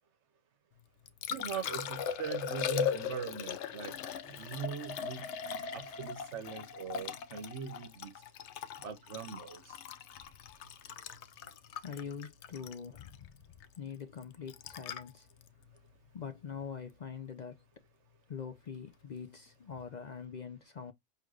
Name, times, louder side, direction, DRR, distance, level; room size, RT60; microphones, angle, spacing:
Liquid, 0.8-16.9 19.7-19.8, left 8 dB, 70° left, 0.9 m, -40 dB
voice 1, 1.3-4.0 4.3-5.3 5.7-8.1 8.8-9.8, right 7 dB, 70° right, 1.1 m, -41 dB
voice 2, 10.1-10.7 11.8-13.4 13.8-15.3 16.1-17.6 18.3-20.9, left 7 dB, 50° left, 0.5 m, -44 dB
6.2 x 3.3 x 2.3 m
omnidirectional pair, 1.2 m